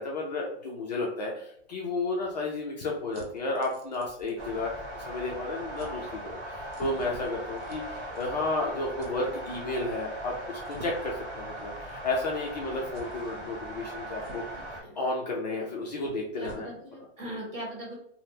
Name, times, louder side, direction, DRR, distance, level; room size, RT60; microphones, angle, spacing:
voice 1, 0.0-4.7 5.0-14.6 15.0-16.7, left 2 dB, 40° left, -2 dB, 0.4 m, -32 dB
sound 1, 1.5-5.1 5.3-5.5 5.7-6.0 6.7-8.6 9.0-9.1 10.6-11.2 11.9-12.0 12.9-13.1 14.2-14.7 15.6-15.7 16.0-16.7, right 2 dB, 55° right, 0.9 m, -48 dB
sound 2, 4.4-14.8, right 1 dB, 5° right, 0.6 m, -39 dB
voice 2, 16.4-17.9, right 1 dB, 25° right, -4 dB, 1.4 m, -40 dB
3.4 x 2.0 x 2.7 m, 0.69 s
hypercardioid pair, 170°, 33 cm